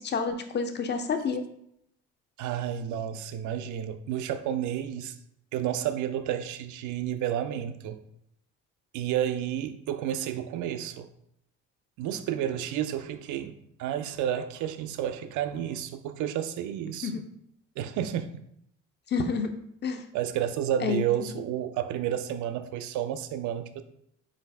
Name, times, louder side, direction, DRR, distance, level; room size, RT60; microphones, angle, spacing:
voice 1, 0.0-1.4 17.0-17.2 19.1-19.5 19.8-20.0 20.8-21.0, left 5 dB, 30° left, 7 dB, 0.6 m, -28 dB
voice 2, 2.4-5.2 5.5-8.0 8.9-11.1 12.0-17.2 17.8-18.4 20.1-23.8, right 10 dB, 55° right, 10 dB, 0.5 m, -31 dB
4.5 x 2.6 x 3.3 m, 0.74 s
hypercardioid pair, 45°, 36 cm